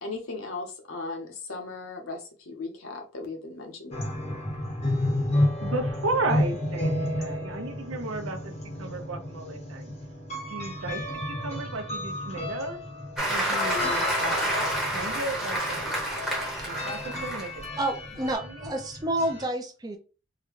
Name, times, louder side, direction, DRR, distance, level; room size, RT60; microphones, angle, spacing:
voice 1, 0.0-4.1, left 3 dB, 70° left, 0.9 m, -37 dB
sound 1, 3.9-19.4, left 1 dB, 30° left, 0.8 m, -32 dB
voice 2, 4.5-5.0 5.6-8.5 8.8-9.9 10.5-12.8 13.3-16.1 16.7-17.6 18.4-18.7, right 2 dB, 70° right, 0.6 m, -34 dB
Applause, 13.2-17.6 18.1-18.3, right 1 dB, ahead, 0.9 m, -29 dB
voice 3, 17.8-20.0, right 1 dB, 20° right, 0.5 m, -29 dB
3.8 x 2.2 x 3.1 m
head